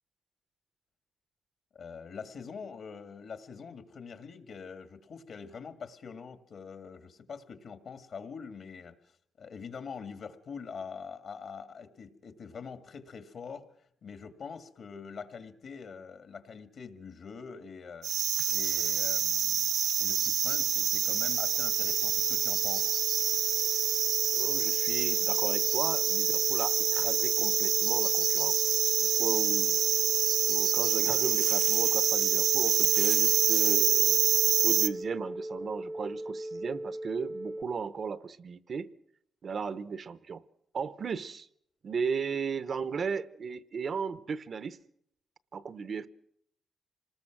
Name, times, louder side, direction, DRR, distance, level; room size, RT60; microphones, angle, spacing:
voice 1, 1.7-8.9 9.4-18.1 18.5-23.0, left 5 dB, 55° left, 2.0 m, -44 dB
sound 1, 18.0-34.9, right 9 dB, 80° right, 1.1 m, -26 dB
sound 2, 20.6-37.6, right 1 dB, 5° right, 0.9 m, -40 dB
voice 2, 24.3-29.8 30.5-34.2 34.6-38.9 39.4-40.4 40.7-41.5 41.8-44.8 45.5-46.1, right 5 dB, 45° right, 0.8 m, -36 dB
27.0 x 20.0 x 6.0 m
cardioid pair, 135°, 0 cm